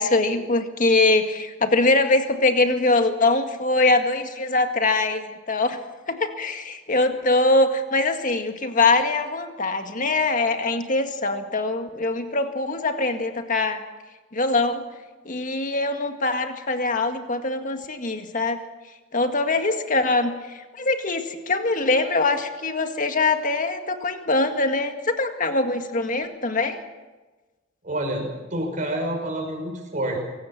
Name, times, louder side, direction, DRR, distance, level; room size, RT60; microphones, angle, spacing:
voice 1, 0.0-5.8 6.1-13.8 14.3-14.8 15.3-18.6 19.1-26.8, left 2 dB, 40° left, 6 dB, 1.9 m, -23 dB
voice 2, 27.8-30.2, right 1 dB, 40° right, 2 dB, 5.9 m, -28 dB
24.5 x 17.5 x 7.5 m, 1.2 s
head